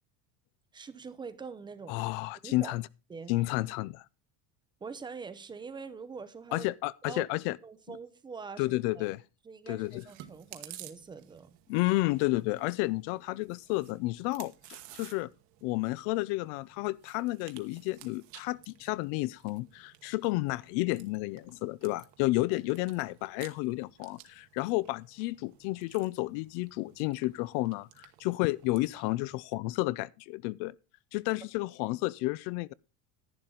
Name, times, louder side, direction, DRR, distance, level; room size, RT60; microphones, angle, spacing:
voice 1, 0.7-2.0 2.4-2.8 3.1-3.3 4.8-6.7 7.1-7.3 7.6-9.1 9.4-11.6, right 5 dB, 15° right, 0.6 m, -44 dB
voice 2, 1.9-2.9 3.3-4.0 6.5-7.6 8.6-9.2 9.7-10.0 11.7-15.3 15.6-30.7 31.1-32.7, left 20 dB, 65° left, 0.5 m, -31 dB
Chewing mastication, 9.8-29.4, right 14 dB, 55° right, 1.3 m, -55 dB
11.0 x 10.5 x 3.8 m
cardioid pair, 165°, 34 cm